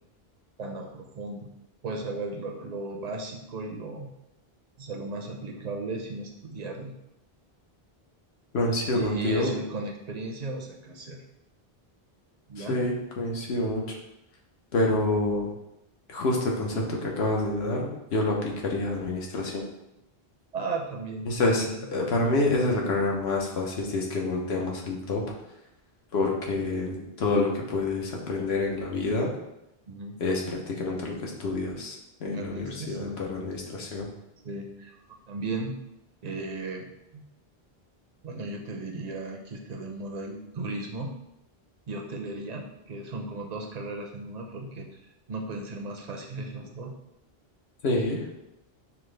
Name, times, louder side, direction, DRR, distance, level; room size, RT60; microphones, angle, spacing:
voice 1, 0.6-1.5 1.8-4.1 4.8-6.9 8.9-11.2 12.5-12.8 20.5-21.8 29.9-30.2 32.2-33.2 34.4-35.0 35.3-35.8 36.2-37.2 38.2-41.1 41.9-44.9 45.3-47.0, right 2 dB, 50° right, 1 dB, 0.6 m, -36 dB
voice 2, 8.5-9.5 12.6-13.8 14.7-15.5 16.1-19.6 21.3-21.6 21.9-25.2 26.1-29.3 30.2-34.1 47.8-48.2, left 2 dB, 85° left, -1 dB, 1.0 m, -27 dB
5.8 x 2.0 x 3.2 m, 0.89 s
omnidirectional pair, 1.0 m